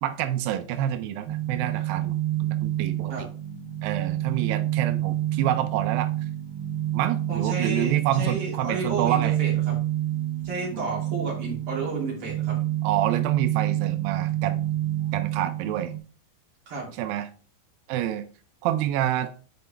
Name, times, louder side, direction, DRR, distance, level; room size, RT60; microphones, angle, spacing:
voice 1, 0.0-3.3 3.8-6.1 6.9-9.4 10.7-11.0 12.8-14.7 15.1-15.9 16.9-17.3 17.9-18.3 18.6-19.3, right 11 dB, 90° right, 9 dB, 2.0 m, -28 dB
sound 1, 1.3-16.0, right 13 dB, 70° right, 2.1 m, -28 dB
voice 2, 7.3-9.8 10.4-12.6 16.7-16.9, right 3 dB, 35° right, -4 dB, 3.3 m, -32 dB
8.1 x 4.6 x 3.3 m, 0.38 s
omnidirectional pair, 4.7 m